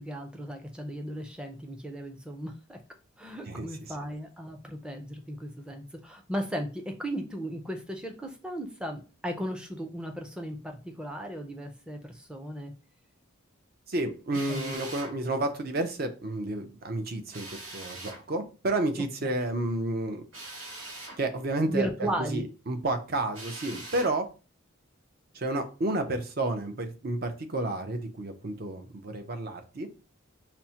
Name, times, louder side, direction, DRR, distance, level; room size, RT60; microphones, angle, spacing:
voice 1, 0.0-2.8 3.2-12.7 14.5-14.8 19.0-19.3 21.7-22.5, right 1 dB, 5° right, 3 dB, 0.5 m, -36 dB
voice 2, 3.5-3.9 13.9-20.2 21.2-24.3 25.3-29.9, right 2 dB, 50° right, 6 dB, 0.6 m, -31 dB
Drill, 14.3-15.1 17.3-18.2 20.3-21.2 23.3-24.1, right 2 dB, 75° right, 2.1 m, -42 dB
5.8 x 2.1 x 2.8 m, 0.34 s
head